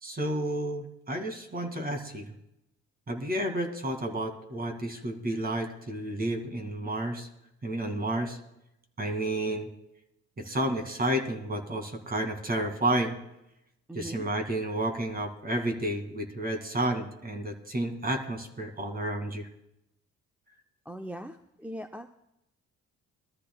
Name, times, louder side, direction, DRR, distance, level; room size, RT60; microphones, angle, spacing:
voice 1, 0.0-2.3 3.1-7.3 7.6-8.4 9.0-9.7 10.4-13.2 13.9-19.5, right 1 dB, 30° right, 5 dB, 2.2 m, -31 dB
voice 2, 13.9-14.3 20.8-22.1, right 1 dB, 5° right, 6 dB, 0.6 m, -40 dB
21.5 x 13.5 x 2.3 m, 0.83 s
cardioid pair, 90°, 30 cm